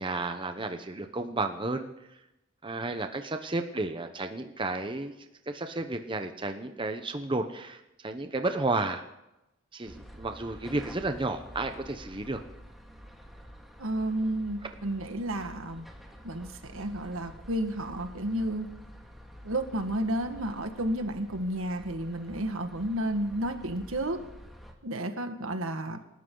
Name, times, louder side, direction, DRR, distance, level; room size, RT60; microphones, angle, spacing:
voice 1, 0.0-2.2 2.6-5.1 5.5-9.0 9.7-12.4, right 2 dB, 25° right, 7 dB, 0.8 m, -32 dB
sound 1, 9.8-24.7, equal, ahead, 1.9 m, -49 dB
voice 2, 13.8-15.9 16.2-18.7 19.4-24.2 24.8-26.0, right 1 dB, 80° right, 7 dB, 1.7 m, -31 dB
28.5 x 13.0 x 3.9 m, 0.92 s
head